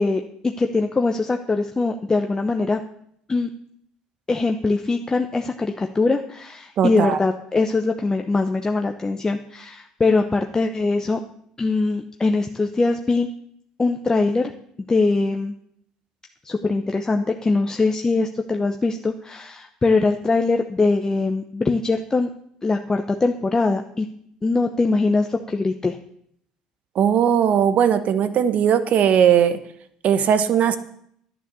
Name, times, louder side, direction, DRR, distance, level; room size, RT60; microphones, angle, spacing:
voice 1, 0.0-2.8 3.3-3.5 4.3-11.2 11.6-13.3 13.8-14.5 14.9-15.5 16.4-22.3 22.6-24.1 24.4-26.0, left 3 dB, 20° left, 4 dB, 0.9 m, -22 dB
voice 2, 6.8-7.2 26.9-29.6 30.0-30.8, right 8 dB, 50° right, 12 dB, 1.2 m, -18 dB
11.0 x 9.8 x 6.9 m, 0.69 s
hypercardioid pair, 70°, 3 cm